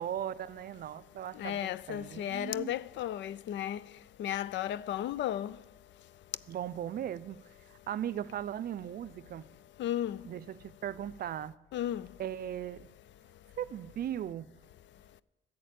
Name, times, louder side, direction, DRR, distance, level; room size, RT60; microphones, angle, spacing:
voice 1, 0.0-2.7 6.5-7.4 7.7-9.5 10.2-11.6 12.2-12.9 13.6-14.5, right 10 dB, 50° right, 0.4 m, -38 dB
voice 2, 1.4-3.8 4.2-5.5 9.8-10.2 11.7-12.1, left 11 dB, 65° left, 0.4 m, -34 dB
11.0 x 7.3 x 7.7 m
cardioid pair, 90°, 20 cm